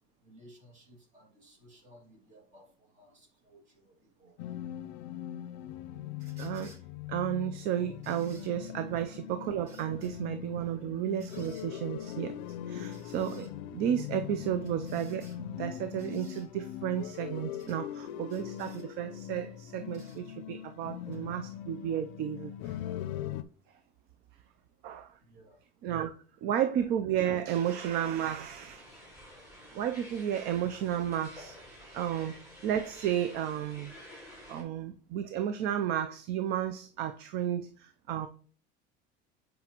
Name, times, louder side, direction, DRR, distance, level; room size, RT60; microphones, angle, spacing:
voice 1, 0.2-2.7 3.0-4.4 25.2-25.6, equal, 35° right, 2.1 m, -58 dB
sound 1, 4.4-23.4, left 11 dB, 85° left, 0.5 m, -41 dB
sound 2, 6.2-6.8 8.0-8.5 9.7-10.1 11.2-11.7 12.9-13.5 14.7-15.4 16.0-16.5 17.6-17.8 18.3-18.9 19.9-20.2 21.1-21.2, right 2 dB, 80° right, 3.7 m, -57 dB
voice 2, 6.4-6.7 7.1-12.3 12.7-22.8 24.8-25.1 25.8-26.1 26.4-28.8 29.7-31.6 31.9-32.3 32.6-33.9 34.5-38.3, right 10 dB, 50° right, 0.5 m, -33 dB
sound 3, 27.5-34.6, equal, 15° right, 3.5 m, -51 dB
7.7 x 5.1 x 2.9 m
cardioid pair, 160°, 21 cm